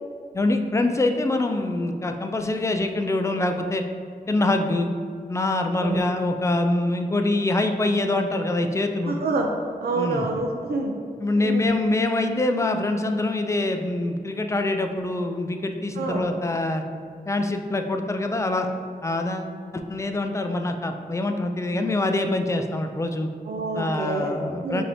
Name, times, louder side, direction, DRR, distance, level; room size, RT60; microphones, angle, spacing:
voice 1, 0.3-3.8 4.3-4.9 5.3-9.2 10.0-10.2 11.2-16.8 17.3-18.7 19.0-23.3 23.7-24.8, left 2 dB, 20° left, 5 dB, 0.4 m, -24 dB
voice 2, 9.0-9.5 9.8-10.9 11.4-11.7 16.0-16.3 23.5-24.4 24.6-24.8, right 3 dB, 80° right, 1 dB, 0.4 m, -27 dB
5.3 x 2.7 x 3.4 m, 2.2 s
cardioid pair, 65°, 16 cm